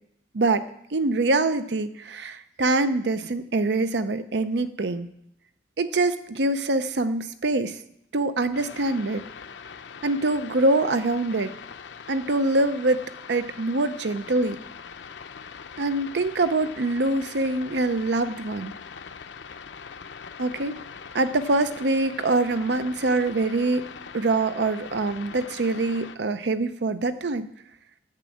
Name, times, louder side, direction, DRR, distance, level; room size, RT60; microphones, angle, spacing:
voice 1, 0.3-5.1 5.8-7.8 8.1-9.2 10.0-11.5 12.1-13.0 13.3-14.6 15.8-18.7 20.4-20.8 21.1-23.9 24.1-27.5, right 2 dB, 70° right, 11 dB, 0.6 m, -24 dB
sound 1, 8.5-26.2, left 6 dB, 90° left, 0.6 m, -42 dB
10.5 x 7.3 x 8.5 m, 0.73 s
head